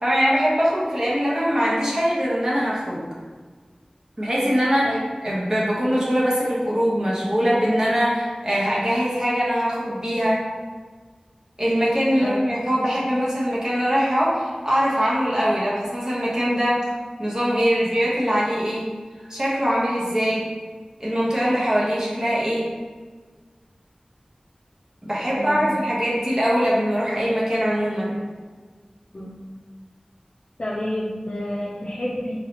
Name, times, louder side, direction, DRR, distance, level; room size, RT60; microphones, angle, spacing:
voice 1, 0.0-3.0 4.2-10.4 11.6-16.8 17.2-18.9 19.3-20.5 21.0-22.7 25.0-28.2, equal, 30° right, -7 dB, 1.1 m, -22 dB
voice 2, 25.3-25.6 29.1-29.3 30.6-32.4, left 1 dB, 50° left, -5 dB, 0.5 m, -29 dB
3.8 x 2.8 x 3.0 m, 1.5 s
wide cardioid pair, 55°, 2 cm